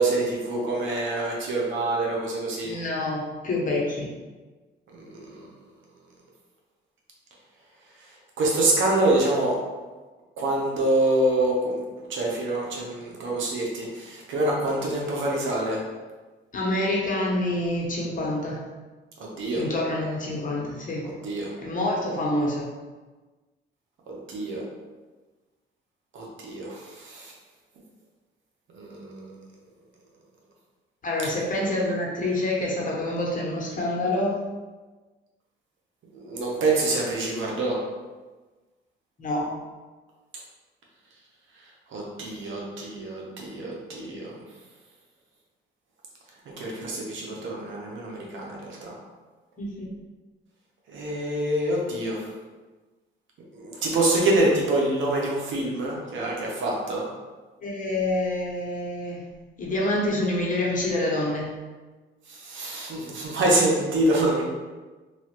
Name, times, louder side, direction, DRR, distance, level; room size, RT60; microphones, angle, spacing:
voice 1, 0.0-2.7 4.9-5.5 8.4-9.5 10.4-11.8 12.1-15.8 19.2-19.6 21.2-21.5 24.1-24.6 26.1-27.3 28.7-29.3 36.1-37.8 41.9-44.3 46.5-48.9 50.9-52.3 53.5-57.0 62.3-64.5, right 2 dB, 75° right, -2 dB, 0.8 m, -26 dB
voice 2, 2.6-4.1 16.5-18.6 19.5-21.1 21.6-22.7 31.0-34.4 39.2-39.6 49.6-49.9 57.6-59.3 59.6-61.5, left 1 dB, 40° left, -3 dB, 0.9 m, -27 dB
3.1 x 2.4 x 2.9 m, 1.3 s
cardioid pair, 90°, 20 cm